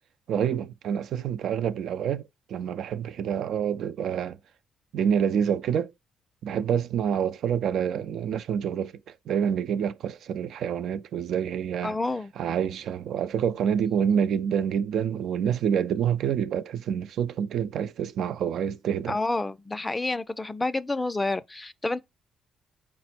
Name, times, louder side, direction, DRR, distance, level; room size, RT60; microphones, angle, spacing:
voice 1, 0.3-4.4 4.9-5.9 6.4-12.0 12.4-19.2, right 8 dB, 70° right, 0.3 m, -27 dB
voice 2, 11.8-12.3 19.1-22.0, left 2 dB, 15° left, 0.3 m, -29 dB
4.4 x 2.0 x 4.2 m
cardioid pair, 90°, 0 cm